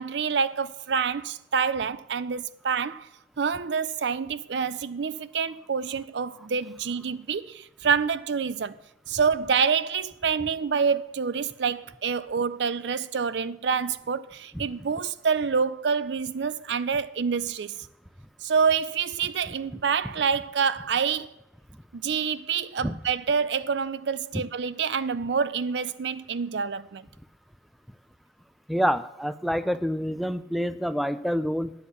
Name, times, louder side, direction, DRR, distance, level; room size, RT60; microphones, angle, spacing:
voice 1, 0.0-3.1 3.4-8.8 9.1-17.7 18.4-21.3 21.9-27.1, right 6 dB, 80° right, 0.5 m, -27 dB
voice 2, 28.7-31.7, equal, ahead, 0.3 m, -27 dB
10.0 x 8.2 x 6.9 m
head